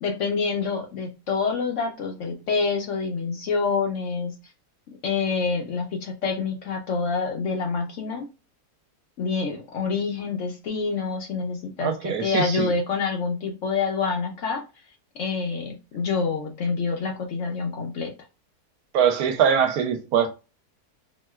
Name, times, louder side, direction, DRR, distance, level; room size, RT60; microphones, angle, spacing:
voice 1, 0.0-4.3 5.0-8.3 9.2-14.6 15.1-18.1, left 4 dB, 65° left, 0.8 m, -27 dB
voice 2, 11.8-12.7 18.9-20.3, right 7 dB, 70° right, 1.0 m, -22 dB
4.1 x 2.2 x 2.2 m
omnidirectional pair, 1.7 m